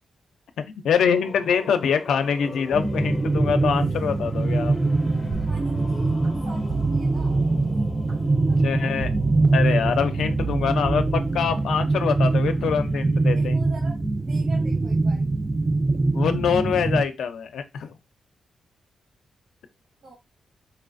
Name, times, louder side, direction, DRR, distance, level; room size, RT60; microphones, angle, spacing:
voice 1, 0.7-4.7 8.6-9.1 9.5-13.6 16.1-17.9, left 7 dB, 80° left, 0.5 m, -24 dB
sound 1, 0.9-13.5, left 3 dB, 30° left, 0.6 m, -43 dB
sound 2, 2.7-17.0, right 3 dB, 15° right, 0.3 m, -23 dB
sound 3, 5.3-6.3 6.7-8.1 9.0-10.0 10.4-11.8 12.2-12.6, right 6 dB, 50° right, 0.7 m, -34 dB
voice 2, 5.5-7.4 8.5-9.1 13.3-14.0 14.3-15.3 20.0-20.1, right 2 dB, 80° right, 1.4 m, -44 dB
4.3 x 2.4 x 2.5 m
wide cardioid pair, 135°, 0 cm